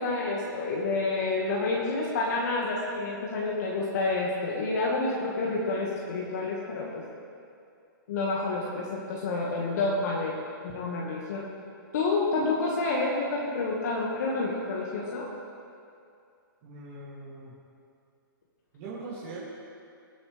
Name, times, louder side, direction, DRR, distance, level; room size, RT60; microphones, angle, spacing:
voice 1, 0.0-7.1 8.1-11.5 11.9-15.3, left 3 dB, 50° left, -3 dB, 2.0 m, -29 dB
voice 2, 16.6-17.5 18.7-19.4, right 3 dB, 30° right, -9 dB, 2.9 m, -41 dB
23.5 x 8.3 x 3.5 m, 2.5 s
hypercardioid pair, 165°, 12 cm